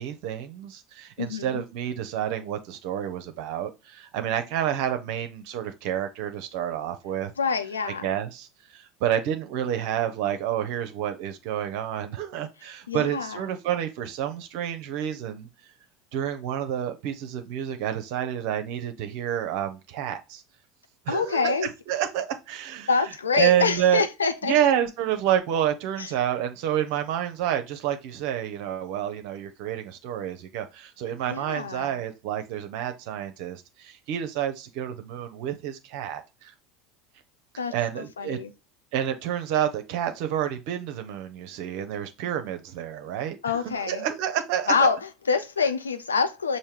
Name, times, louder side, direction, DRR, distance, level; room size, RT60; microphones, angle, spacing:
voice 1, 0.0-7.3 8.0-15.5 16.1-20.4 21.1-22.9 23.3-24.1 24.4-36.5 37.7-38.4 38.9-44.9, right 10 dB, 60° right, 0.6 m, -29 dB
voice 2, 1.2-1.6 7.4-8.1 12.9-13.4 21.1-21.7 22.9-24.6 26.0-26.1 31.3-32.0 37.6-38.5 43.4-44.1 44.7-46.6, left 5 dB, 90° left, 0.4 m, -26 dB
5.6 x 2.6 x 3.2 m
hypercardioid pair, 75°, 0 cm